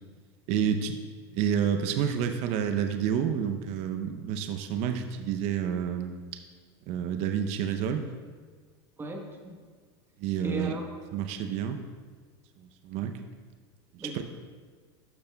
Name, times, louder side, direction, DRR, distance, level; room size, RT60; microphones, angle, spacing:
voice 1, 0.5-1.0 1.3-6.2 6.9-8.1 10.2-10.7 11.1-11.8 12.8-13.1 14.0-14.2, right 8 dB, 55° right, 7 dB, 0.6 m, -29 dB
voice 2, 9.0-9.6 10.4-11.0 14.0-14.2, right 1 dB, 15° right, 2 dB, 1.1 m, -36 dB
12.0 x 6.8 x 2.3 m, 1.6 s
supercardioid pair, 115°, 14 cm